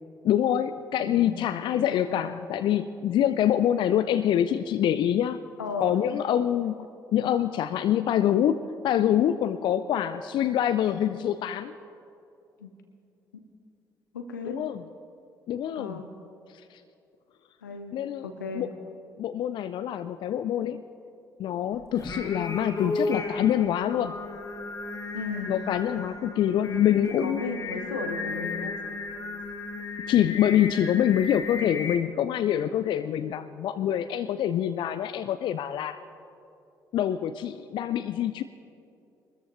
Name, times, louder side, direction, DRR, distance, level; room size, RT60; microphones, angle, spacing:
voice 1, 0.2-5.4 5.8-11.7 14.5-14.8 15.5-16.0 16.7-16.8 17.9-18.3 18.5-18.7 19.2-20.8 21.4-24.2 25.5-27.4 30.1-36.0 36.9-38.4, left 10 dB, 50° left, 12 dB, 0.4 m, -25 dB
voice 2, 1.0-1.3 1.8-2.3 5.6-5.9 12.6-12.7 13.3-13.4 14.1-14.6 15.8-16.1 17.6-18.0 18.2-18.7 25.1-25.6 27.2-28.8, left 4 dB, 85° left, 6 dB, 0.9 m, -35 dB
Singing, 21.9-32.0, left 3 dB, 35° left, 2.3 m, -34 dB
22.5 x 13.5 x 3.1 m, 2.6 s
figure-of-eight pair, 45°, 10 cm